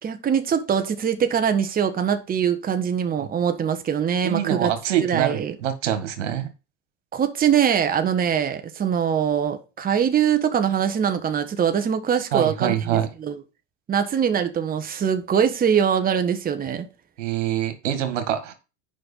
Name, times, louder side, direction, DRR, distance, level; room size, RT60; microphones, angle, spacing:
voice 1, 0.0-4.7 5.0-5.5 7.1-13.4 13.9-16.9, right 8 dB, 25° right, 1.2 m, -23 dB
voice 2, 4.2-6.5 12.3-13.1 17.2-18.5, right 10 dB, 90° right, 1.8 m, -25 dB
7.8 x 5.5 x 5.5 m
supercardioid pair, 110°, 36 cm